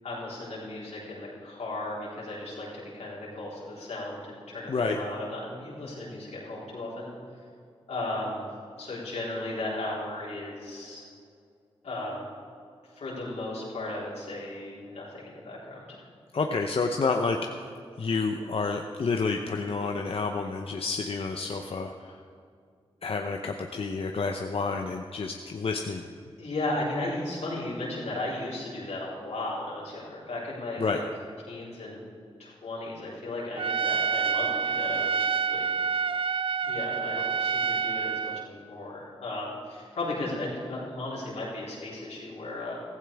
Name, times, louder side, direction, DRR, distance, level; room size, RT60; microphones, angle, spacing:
voice 1, 0.0-7.1 7.9-8.5 8.8-11.0 11.8-12.2 12.9-16.1 26.4-31.0 31.5-32.0 32.4-35.3 35.5-35.6 36.6-42.8, left 2 dB, 90° left, -6 dB, 4.0 m, -35 dB
voice 2, 16.3-17.7 18.0-22.1 23.0-26.1 30.8-31.0, left 4 dB, 60° left, 4 dB, 0.8 m, -29 dB
Trumpet, 33.6-38.5, right 6 dB, 55° right, 0.4 m, -28 dB
15.5 x 14.5 x 3.5 m, 2.3 s
cardioid pair, 45°, 11 cm